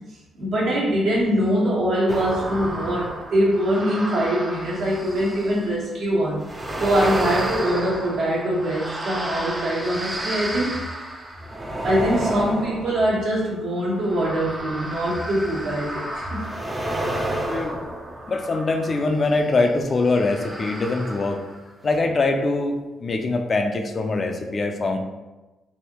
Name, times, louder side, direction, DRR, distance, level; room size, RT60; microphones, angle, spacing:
voice 1, 0.4-6.4 6.8-10.8 11.8-16.4, equal, 70° right, -5 dB, 1.3 m, -23 dB
sound 1, 2.1-5.8 6.4-19.2 20.0-21.6 21.9-22.0, right 1 dB, 20° right, 0.5 m, -31 dB
voice 2, 17.5-17.9 18.3-21.4 21.8-25.0, left 3 dB, 40° left, 4 dB, 0.4 m, -23 dB
3.4 x 2.6 x 2.9 m, 1.1 s
cardioid pair, 90°, 0 cm